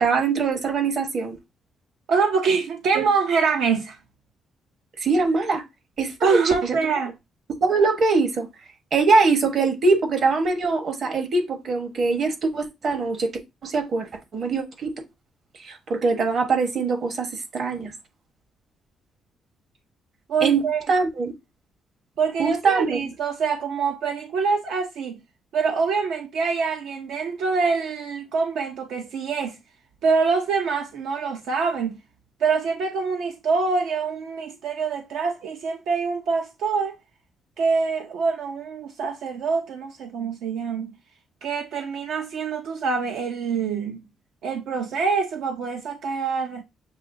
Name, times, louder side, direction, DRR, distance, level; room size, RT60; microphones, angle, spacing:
voice 1, 0.0-1.4 2.9-3.0 5.0-5.6 6.0-6.8 7.6-8.5 8.9-13.3 13.6-14.9 15.6-17.9 20.4-21.3 22.4-23.0, right 4 dB, 50° right, 1.1 m, -22 dB
voice 2, 2.1-4.0 6.2-7.1 20.3-20.9 22.2-25.2 25.5-29.6 30.0-32.0 32.4-37.0 37.6-40.9 41.4-44.0 44.4-46.6, right 5 dB, 80° right, 0.6 m, -25 dB
7.0 x 2.8 x 2.6 m
cardioid pair, 115°, 0 cm